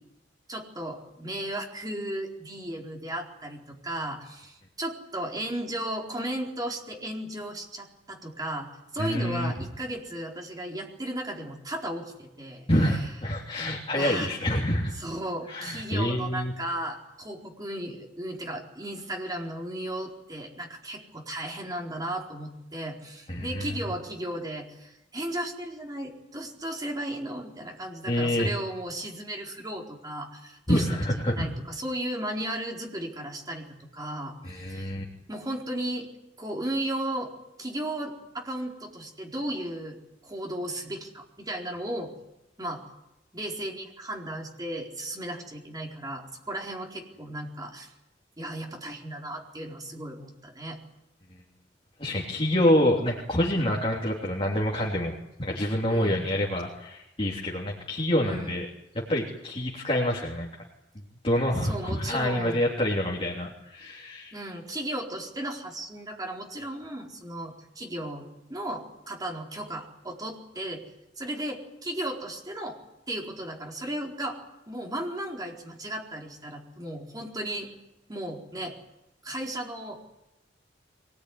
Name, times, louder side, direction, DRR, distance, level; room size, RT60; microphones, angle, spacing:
voice 1, 0.5-13.0 13.9-14.3 14.9-31.0 31.3-34.9 35.3-36.1 36.4-37.3 37.6-42.1 42.6-42.8 43.3-47.9 48.4-50.8 55.9-56.3 58.2-58.5 61.6-62.6 64.3-70.8 71.2-72.8 73.1-74.4 74.7-77.7 78.1-78.7 79.2-80.0, right 1 dB, 20° right, 0 dB, 4.3 m, -35 dB
voice 2, 9.0-9.5 12.7-14.9 15.5-16.5 23.3-23.7 28.1-28.5 30.7-31.5 34.4-35.0 52.0-58.6 58.9-60.5 61.2-64.3, left 1 dB, 30° left, -2 dB, 3.3 m, -27 dB
23.0 x 19.5 x 9.6 m, 0.90 s
head